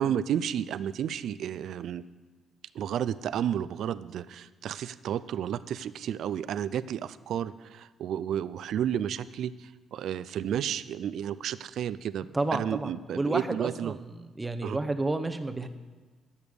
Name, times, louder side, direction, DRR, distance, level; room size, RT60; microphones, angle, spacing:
voice 1, 0.0-2.1 2.7-14.0 14.6-14.8, right 9 dB, 70° right, 16 dB, 0.3 m, -32 dB
voice 2, 12.3-15.7, right 2 dB, 20° right, 8 dB, 0.7 m, -31 dB
10.5 x 7.0 x 6.4 m, 1.3 s
cardioid pair, 90°, 0 cm